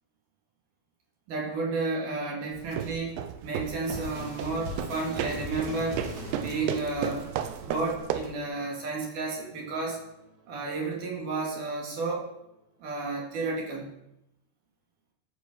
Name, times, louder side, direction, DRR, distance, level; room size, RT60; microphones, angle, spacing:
voice 1, 1.3-6.0 6.3-7.3 7.6-10.0 10.5-12.3 12.8-13.9, right 3 dB, 55° right, -1 dB, 3.0 m, -32 dB
sound 1, 2.5-8.4, right 9 dB, 85° right, 2.5 m, -34 dB
sound 2, 3.8-11.5, left 1 dB, 35° right, 3.3 m, -43 dB
14.0 x 5.0 x 5.3 m, 0.84 s
omnidirectional pair, 5.2 m